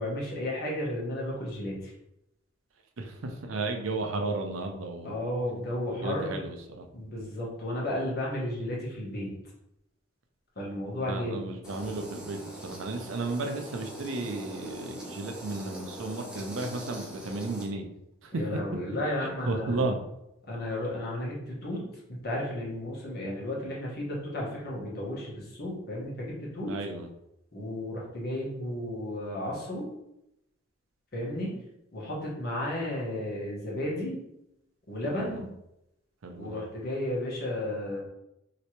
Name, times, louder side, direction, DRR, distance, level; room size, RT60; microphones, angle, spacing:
voice 1, 0.0-1.9 5.0-6.4 6.9-9.3 10.6-11.5 18.3-19.8 20.5-26.7 27.5-29.9 31.1-31.6 31.9-34.2 34.9-35.5 36.4-38.0, left 1 dB, 50° left, -4 dB, 1.1 m, -33 dB
voice 2, 3.0-5.1 5.9-6.9 11.0-17.9 18.2-18.3 19.2-20.0 26.7-27.1 35.0-35.4 36.2-36.6, right 3 dB, 80° right, 4 dB, 0.5 m, -34 dB
sound 1, 11.6-17.7, right 1 dB, 5° right, 0.5 m, -42 dB
3.3 x 3.0 x 2.9 m, 0.83 s
head